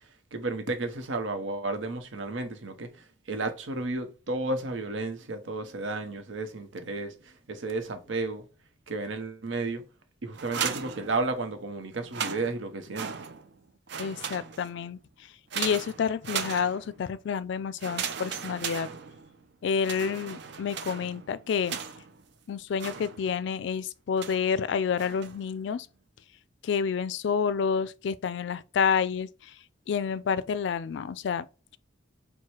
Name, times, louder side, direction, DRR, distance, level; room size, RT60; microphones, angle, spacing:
voice 1, 0.3-8.4 8.9-9.8 10.2-13.1, right 2 dB, 90° right, 0.9 m, -33 dB
sound 1, 10.3-11.6 12.0-13.6 13.9-14.8 15.5-17.1 17.8-19.4 19.8-22.2 22.8-23.5 24.2-24.5 25.0-25.5, right 7 dB, 65° right, 0.5 m, -37 dB
voice 2, 14.0-15.0 15.6-18.9 19.6-21.8 22.5-25.9 26.6-29.5 29.9-31.5, left 6 dB, 65° left, 0.3 m, -29 dB
4.7 x 2.2 x 4.3 m
head